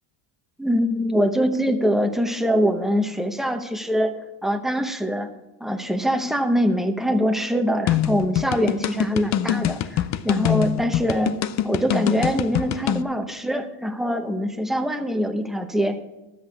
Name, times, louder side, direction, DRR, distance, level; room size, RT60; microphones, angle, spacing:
voice 1, 0.6-4.1 4.4-5.3 5.6-11.3 11.6-16.0, equal, ahead, 6 dB, 0.8 m, -23 dB
sound 1, 7.9-13.0, left 11 dB, 35° left, 0.5 m, -24 dB
13.0 x 7.9 x 4.7 m, 1.0 s
cardioid pair, 135°, 49 cm